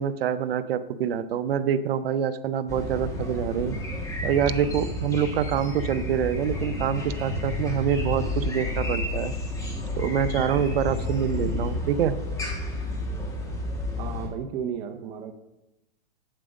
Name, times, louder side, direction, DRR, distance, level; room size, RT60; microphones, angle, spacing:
voice 1, 0.0-3.8 4.2-9.3 10.0-12.1, right 8 dB, 65° right, 13 dB, 0.7 m, -26 dB
sound 1, 2.7-14.3, left 1 dB, 10° left, 1.3 m, -31 dB
voice 2, 14.0-15.3, right 8 dB, 20° right, 5 dB, 0.6 m, -33 dB
8.9 x 7.5 x 5.1 m, 0.96 s
hypercardioid pair, 155°, 31 cm